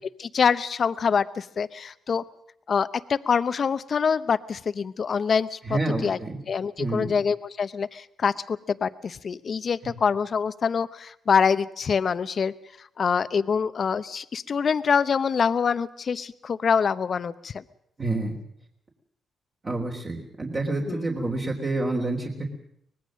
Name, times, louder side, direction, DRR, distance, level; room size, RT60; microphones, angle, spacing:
voice 1, 0.2-2.2 2.7-6.2 6.5-17.6 20.9-21.1, left 6 dB, 50° left, 14 dB, 0.8 m, -25 dB
voice 2, 5.7-6.3 6.8-7.1 18.0-18.3 19.6-22.5, right 2 dB, 35° right, -1 dB, 3.5 m, -28 dB
24.5 x 19.5 x 6.4 m, 0.69 s
cardioid pair, 95°, 0 cm